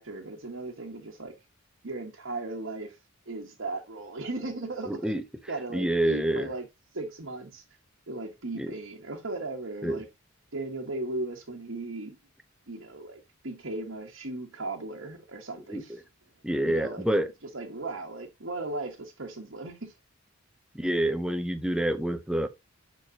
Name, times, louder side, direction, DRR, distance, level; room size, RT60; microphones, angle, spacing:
voice 1, 0.0-1.3 1.8-3.0 3.3-5.1 5.5-6.7 6.9-7.6 8.1-10.1 10.5-12.2 12.7-15.9 16.6-17.1 17.5-19.9, right 2 dB, 65° right, 1.2 m, -37 dB
voice 2, 4.9-5.2 5.7-6.5 8.6-8.7 9.8-10.0 15.7-15.8 16.4-17.3 20.7-22.5, right 1 dB, 5° right, 0.6 m, -27 dB
6.8 x 5.9 x 2.9 m
head